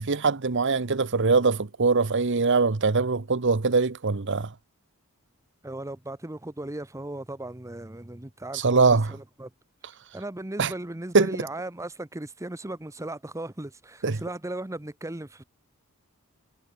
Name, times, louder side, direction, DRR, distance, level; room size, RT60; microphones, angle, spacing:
voice 1, 0.0-4.5 8.5-9.1 10.6-10.7 11.1-11.4 14.0-14.2, right 4 dB, 55° right, 1.0 m, -22 dB
voice 2, 5.6-8.8 9.1-9.5 10.1-15.4, right 1 dB, 15° right, 0.9 m, -37 dB
head